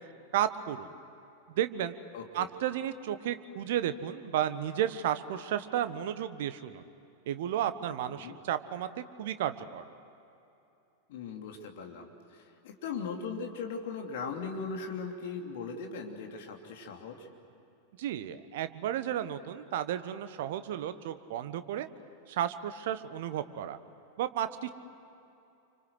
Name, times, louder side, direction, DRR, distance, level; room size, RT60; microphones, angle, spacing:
voice 1, 0.3-0.9 1.5-2.0 2.3-6.8 7.3-8.9 9.2-9.9 18.0-21.9 22.3-23.8 24.2-24.7, right 11 dB, 55° right, 11 dB, 1.2 m, -33 dB
voice 2, 2.1-2.5 8.1-8.4 11.1-17.3, left 5 dB, 55° left, 2 dB, 3.0 m, -39 dB
29.5 x 25.0 x 8.0 m, 2.9 s
figure-of-eight pair, 90°, 0 cm